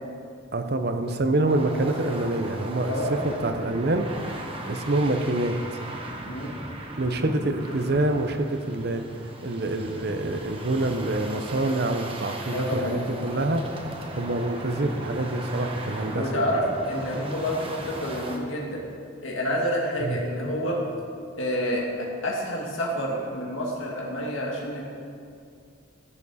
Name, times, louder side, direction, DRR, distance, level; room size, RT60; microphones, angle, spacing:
voice 1, 0.5-2.9 3.2-4.1 4.7-5.6 7.0-9.0 9.4-13.6 14.2-16.2 20.0-20.2, right 2 dB, 55° right, 7 dB, 0.7 m, -26 dB
sound 1, 1.5-18.4, right 1 dB, 30° right, 1.0 m, -38 dB
voice 2, 2.9-3.2 6.3-6.6 7.6-7.7 12.5-13.0 16.1-18.8 19.2-20.8 21.4-24.8, equal, 90° left, -2 dB, 2.1 m, -28 dB
15.0 x 7.0 x 4.2 m, 2.4 s
head